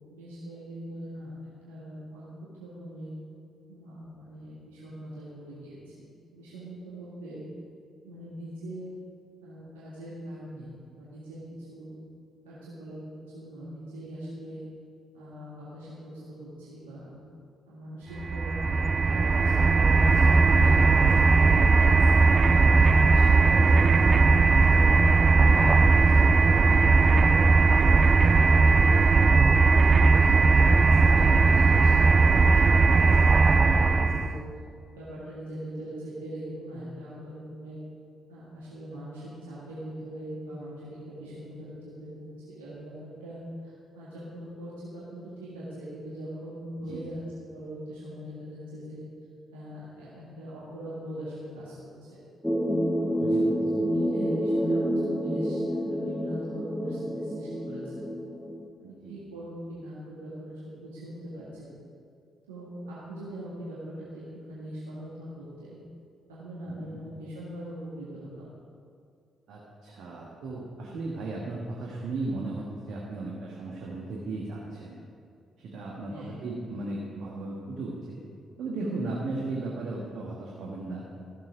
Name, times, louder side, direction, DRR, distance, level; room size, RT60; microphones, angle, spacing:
voice 1, 0.1-1.3 1.7-2.3 2.6-3.1 3.7-6.1 6.3-7.4 8.0-8.9 9.4-12.0 12.4-13.0 13.3-14.6 15.1-17.1 17.7-18.8 19.1-22.2 22.8-28.8 29.4-34.4 35.0-37.8 38.3-43.4 43.6-47.2 47.5-49.0 49.5-51.7 53.0-53.5 53.8-58.0 58.8-61.7 62.5-64.2 64.5-65.8 66.3-68.5 76.1-76.4, right 1 dB, 85° right, -9 dB, 1.9 m, -41 dB
sound 1, 18.2-34.4, right 4 dB, 40° right, 0.4 m, -19 dB
voice 2, 22.5-22.9 33.8-34.1 46.9-47.1 53.2-53.5 59.0-59.3 66.7-67.0 69.5-75.0 75.6-78.2 78.6-81.1, right 2 dB, 65° right, -3 dB, 1.5 m, -36 dB
sound 2, 52.4-58.7, equal, ahead, 0.9 m, -28 dB
14.0 x 7.5 x 5.1 m, 2.4 s
figure-of-eight pair, 40°, 0 cm